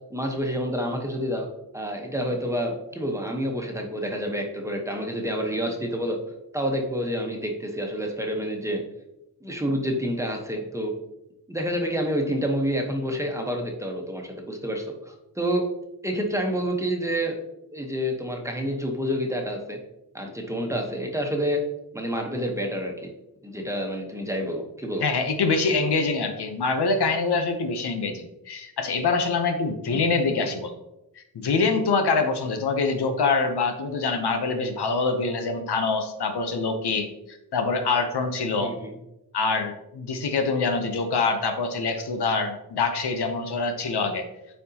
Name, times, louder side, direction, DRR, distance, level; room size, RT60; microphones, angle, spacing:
voice 1, 0.1-1.5 1.7-6.2 6.5-8.8 9.4-10.9 11.5-15.6 16.0-17.4 17.7-19.8 20.1-21.6 21.9-23.1 23.4-25.1 29.9-30.0 38.6-38.9, equal, 10° right, 1 dB, 1.1 m, -28 dB
voice 2, 25.0-30.7 31.2-38.7 39.3-44.3, left 4 dB, 90° left, 6 dB, 0.9 m, -25 dB
8.9 x 4.4 x 2.9 m, 0.89 s
wide cardioid pair, 100°, 38 cm